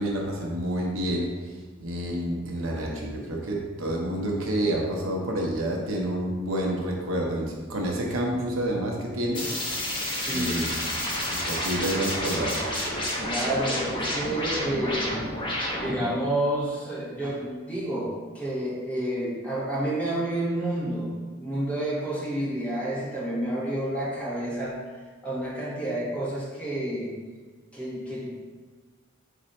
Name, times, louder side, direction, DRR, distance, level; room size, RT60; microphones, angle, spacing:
voice 1, 0.0-9.5 10.3-10.7 11.3-12.6, right 1 dB, 75° right, -1 dB, 0.7 m, -29 dB
sound 1, 9.3-16.1, left 1 dB, 25° left, 0.7 m, -30 dB
voice 2, 9.9-10.5 13.2-15.1 15.7-24.8 25.2-27.1 27.7-28.2, right 1 dB, 5° left, -8 dB, 1.3 m, -29 dB
4.2 x 2.6 x 4.1 m, 1.4 s
head